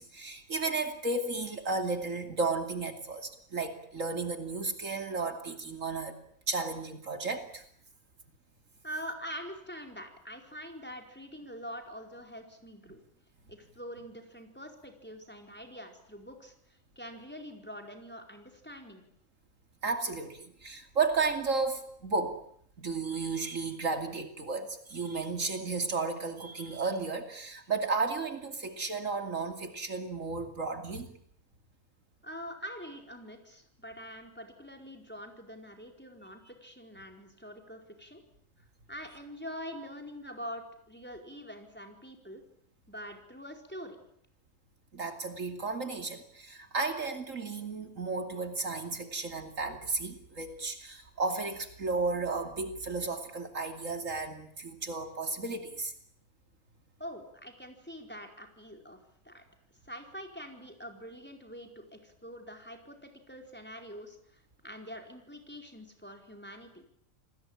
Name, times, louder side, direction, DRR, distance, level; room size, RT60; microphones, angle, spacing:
voice 1, 0.0-6.2 6.5-7.6 19.8-22.4 22.8-31.2 44.9-55.9, right 3 dB, 70° right, 6 dB, 3.0 m, -33 dB
voice 2, 8.8-13.0 13.5-16.5 17.0-19.0 32.2-38.2 38.9-42.4 42.9-44.0 57.0-59.0 59.2-59.4 59.8-66.8, equal, 10° left, 3 dB, 4.7 m, -44 dB
29.0 x 20.0 x 8.9 m, 0.66 s
omnidirectional pair, 1.4 m